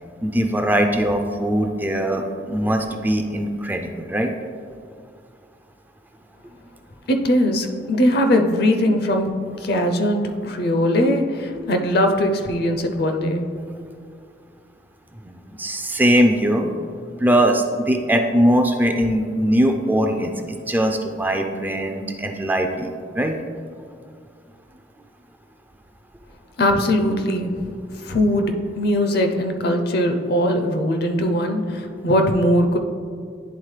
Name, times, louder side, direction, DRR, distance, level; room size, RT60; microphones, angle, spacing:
voice 1, 0.2-4.3 15.2-16.7 17.2-20.3 20.7-22.9 23.2-23.3 23.8-23.9, equal, 10° right, 4 dB, 0.3 m, -21 dB
voice 2, 7.1-13.4 26.6-32.8, equal, 60° left, 5 dB, 0.5 m, -20 dB
10.0 x 3.8 x 3.2 m, 2.2 s
head